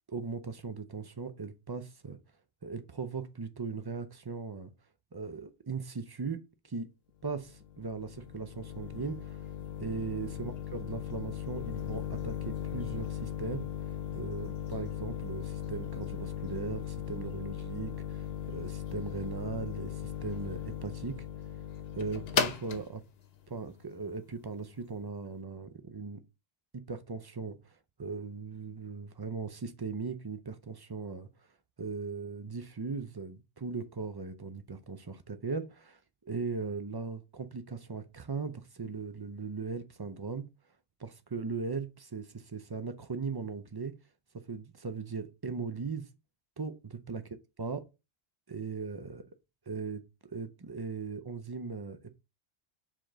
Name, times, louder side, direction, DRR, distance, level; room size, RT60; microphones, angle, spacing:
voice 1, 0.1-2.2 2.6-4.7 5.1-6.9 7.2-9.4 9.8-13.7 14.1-21.3 21.9-23.0 23.5-26.2 26.7-31.3 31.8-40.5 41.0-44.0 44.3-46.1 46.6-47.3 47.6-47.9 48.5-49.3 49.7-52.2, right 4 dB, 35° right, 0.4 m, -38 dB
sound 1, 7.3-24.9, left 9 dB, 65° left, 1.0 m, -38 dB
5.0 x 3.8 x 5.0 m
omnidirectional pair, 1.1 m